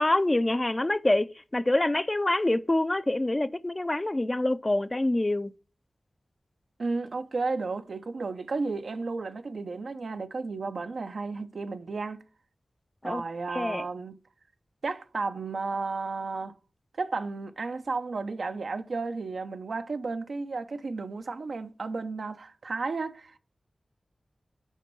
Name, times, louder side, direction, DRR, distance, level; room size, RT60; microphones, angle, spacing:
voice 1, 0.0-5.5 13.0-13.2 13.5-13.9, left 1 dB, 30° left, 0.5 m, -26 dB
voice 2, 6.8-12.2 13.0-14.1 14.8-16.5 17.0-23.4, right 3 dB, 80° right, 0.7 m, -33 dB
7.3 x 5.2 x 5.4 m
cardioid pair, 50°, 0 cm